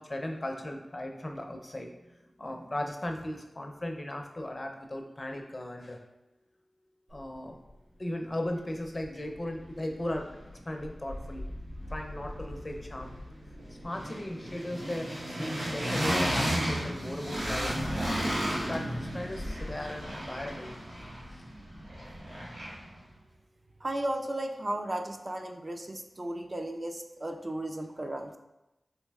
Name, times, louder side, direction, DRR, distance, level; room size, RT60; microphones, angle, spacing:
voice 1, 0.0-1.9 2.4-6.0 7.1-7.6 8.0-10.2 10.7-11.5 11.9-13.1 13.8-15.1 15.4-18.0 18.7-20.7, left 1 dB, 40° left, 3 dB, 0.4 m, -37 dB
sound 1, 9.0-9.1 9.4-10.5 10.8-23.0, equal, 85° right, 0.9 m, -34 dB
voice 2, 23.8-28.4, right 1 dB, 40° right, 4 dB, 0.3 m, -35 dB
4.1 x 2.7 x 2.3 m, 0.96 s
cardioid pair, 40°, 0 cm